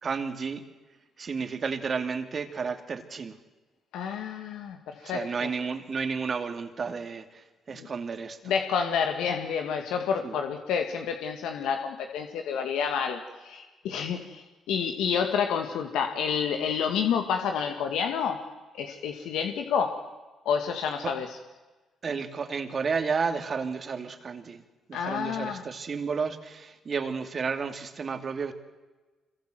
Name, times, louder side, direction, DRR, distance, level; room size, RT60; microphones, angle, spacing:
voice 1, 0.0-0.6 1.2-3.4 5.0-8.4 10.2-10.3 21.0-21.1 22.0-24.6 24.9-28.5, right 5 dB, 45° right, 8 dB, 2.6 m, -32 dB
voice 2, 3.9-5.5 7.7-7.9 8.4-18.4 18.7-20.0 20.5-21.4 24.9-25.6, left 7 dB, 85° left, 5 dB, 2.1 m, -29 dB
26.0 x 23.0 x 7.9 m, 1.2 s
cardioid pair, 90°, 0 cm